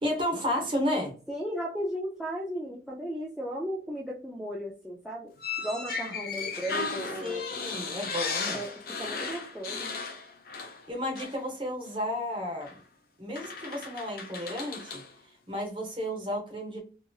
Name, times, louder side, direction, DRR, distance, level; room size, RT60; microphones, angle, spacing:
voice 1, 0.0-1.1 6.4-6.5 7.2-8.6 10.9-12.8 13.2-15.0 15.5-16.8, left 1 dB, 30° right, 1 dB, 0.9 m, -32 dB
voice 2, 1.3-5.3 5.6-7.4 8.4-8.7 9.0-9.9, equal, 5° right, -5 dB, 0.4 m, -35 dB
sound 1, 5.4-10.9 11.1-11.4 12.6-12.8 13.3-15.1, left 4 dB, 55° left, 0.6 m, -35 dB
2.8 x 2.5 x 2.3 m, 0.39 s
head